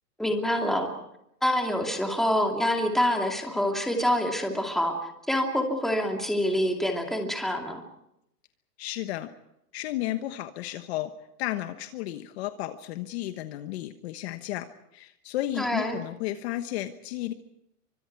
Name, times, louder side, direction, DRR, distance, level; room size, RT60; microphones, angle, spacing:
voice 1, 0.2-0.9 1.4-7.8 15.6-16.0, equal, ahead, 2 dB, 2.4 m, -26 dB
voice 2, 8.8-9.3 9.7-11.1 11.4-14.7 14.9-17.3, left 14 dB, 40° left, 9 dB, 1.2 m, -33 dB
29.5 x 25.0 x 4.7 m, 0.80 s
hypercardioid pair, 155°, 48 cm